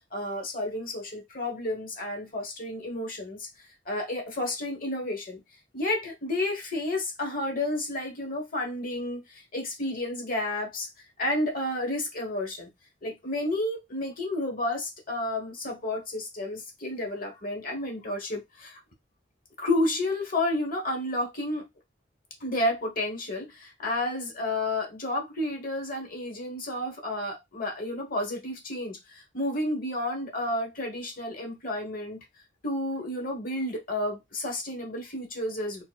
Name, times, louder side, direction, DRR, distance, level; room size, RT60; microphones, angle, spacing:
voice 1, 0.1-3.5 3.9-5.4 5.7-10.9 11.2-12.7 13.0-18.8 19.6-21.6 22.4-32.2 32.6-35.8, left 1 dB, 50° left, 1.0 m, -31 dB
4.4 x 2.1 x 2.2 m
head